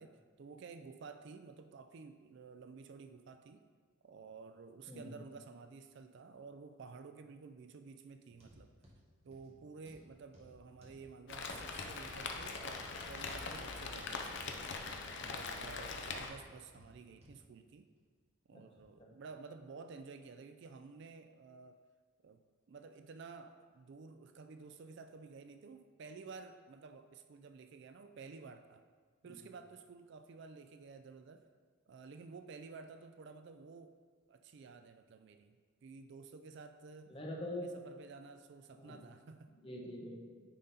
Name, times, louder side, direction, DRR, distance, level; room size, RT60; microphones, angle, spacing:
voice 1, 0.0-3.6 4.0-8.7 9.2-14.5 15.2-17.9 18.5-21.8 22.2-22.4 22.7-28.8 29.2-31.5 31.9-33.9 34.3-37.1 37.5-39.5, right 4 dB, 55° right, 8 dB, 0.4 m, -52 dB
voice 2, 4.9-5.2 18.5-18.6 19.0-19.1 29.3-29.4 37.1-37.7 38.7-39.0 39.6-40.4, left 1 dB, 25° left, 0 dB, 0.9 m, -44 dB
sound 1, 8.3-17.4 18.0-18.1 18.8-18.9, equal, 30° right, 1.2 m, -60 dB
Rain, 11.3-16.3, left 4 dB, 55° left, 0.6 m, -42 dB
9.1 x 3.8 x 4.2 m, 1.5 s
head